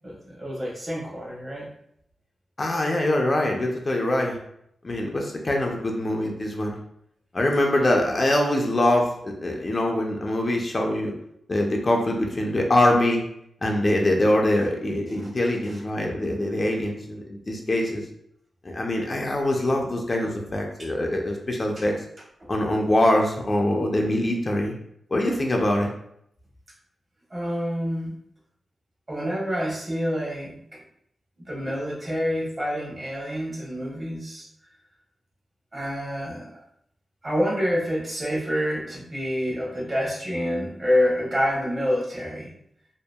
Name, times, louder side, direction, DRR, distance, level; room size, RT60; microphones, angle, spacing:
voice 1, 0.0-1.7 7.7-7.9 15.1-15.3 15.7-15.8 20.8-20.9 21.8-21.9 22.4-22.5 27.3-28.1 29.1-30.8 31.5-34.5 35.7-36.6 37.2-42.5, equal, 35° right, -3 dB, 0.9 m, -27 dB
voice 2, 2.6-4.4 4.8-6.7 7.3-11.1 11.5-13.3 13.6-18.0 18.6-22.0 22.5-24.7 25.1-25.9, left 1 dB, 35° left, 0 dB, 0.4 m, -23 dB
2.7 x 2.4 x 2.2 m, 0.72 s
cardioid pair, 80°, 0 cm